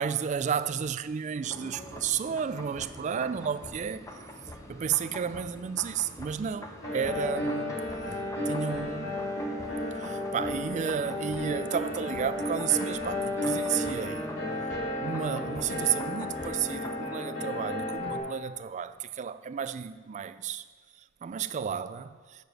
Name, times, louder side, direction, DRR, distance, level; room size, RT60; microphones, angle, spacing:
voice 1, 0.0-4.3 4.7-8.2 8.5-9.3 9.9-14.3 15.0-20.6 21.0-22.4, right 7 dB, 35° right, 0.3 m, -32 dB
sound 1, 1.4-17.0, left 1 dB, 15° left, 0.8 m, -46 dB
sound 2, 6.8-18.2, left 1 dB, 70° left, 3.2 m, -33 dB
8.0 x 6.8 x 6.3 m
head